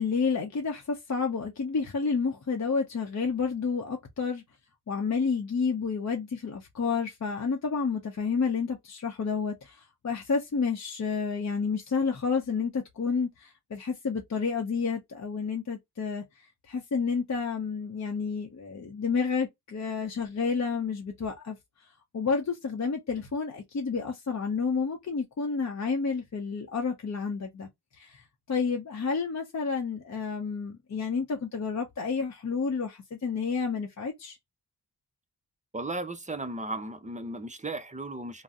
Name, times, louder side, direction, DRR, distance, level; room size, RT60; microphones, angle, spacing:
voice 1, 0.0-4.4 4.9-9.8 10.0-16.2 16.7-21.6 22.1-27.7 28.0-28.2 28.5-34.4, left 5 dB, 45° left, 0.6 m, -30 dB
voice 2, 35.7-38.4, right 2 dB, 20° right, 0.5 m, -35 dB
2.6 x 2.0 x 3.4 m
wide cardioid pair, 80°, 40 cm